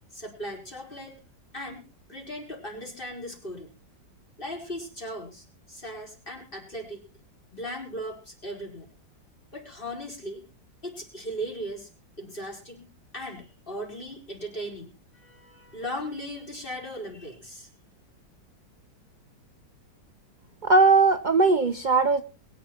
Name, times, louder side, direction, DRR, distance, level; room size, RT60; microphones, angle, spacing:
voice 1, 0.1-1.2 1.5-1.8 2.1-3.7 4.4-7.0 7.5-8.9 9.5-10.5 10.8-11.9 12.2-12.8 13.1-17.7, equal, 30° left, 0 dB, 4.9 m, -38 dB
voice 2, 20.6-22.2, right 3 dB, 65° right, 8 dB, 0.4 m, -19 dB
22.0 x 9.4 x 4.4 m, 0.34 s
omnidirectional pair, 2.0 m